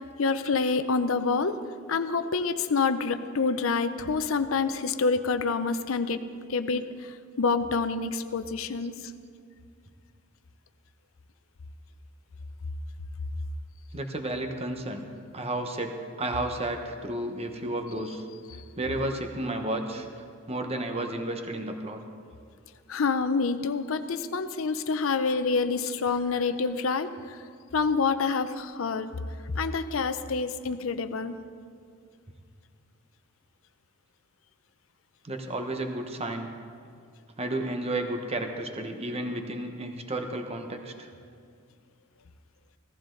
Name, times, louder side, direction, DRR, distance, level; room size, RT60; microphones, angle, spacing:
voice 1, 0.2-1.6 1.9-6.2 6.5-9.1 22.9-27.4 27.7-29.1 29.5-31.4, left 4 dB, 75° left, 11 dB, 0.6 m, -27 dB
voice 2, 13.9-15.1 15.3-18.2 18.8-20.1 20.5-22.0 35.2-36.5 37.4-41.1, right 1 dB, 30° right, 5 dB, 1.0 m, -32 dB
16.5 x 14.5 x 3.9 m, 2.2 s
head